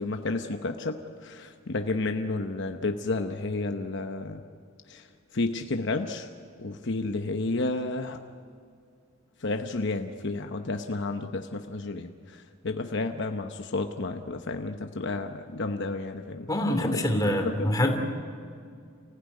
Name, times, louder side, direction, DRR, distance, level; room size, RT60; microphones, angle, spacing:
voice 1, 0.0-4.4 4.9-5.1 5.3-6.3 6.6-8.2 9.4-17.7, left 2 dB, 60° left, 6 dB, 1.0 m, -31 dB
voice 2, 16.5-18.0, left 1 dB, 20° left, 4 dB, 2.7 m, -25 dB
30.0 x 16.0 x 9.5 m, 2.3 s
head